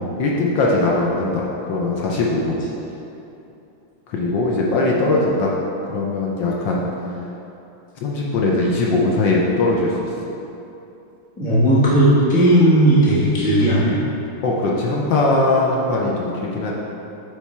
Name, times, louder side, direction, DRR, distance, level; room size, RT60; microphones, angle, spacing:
voice 1, 0.2-2.6 4.1-5.5 5.9-6.9 8.0-10.1 14.4-16.7, left 2 dB, 70° left, -3 dB, 1.2 m, -20 dB
voice 2, 11.4-14.0, right 1 dB, 10° left, -8 dB, 0.5 m, -15 dB
8.1 x 3.3 x 4.2 m, 2.8 s
omnidirectional pair, 2.4 m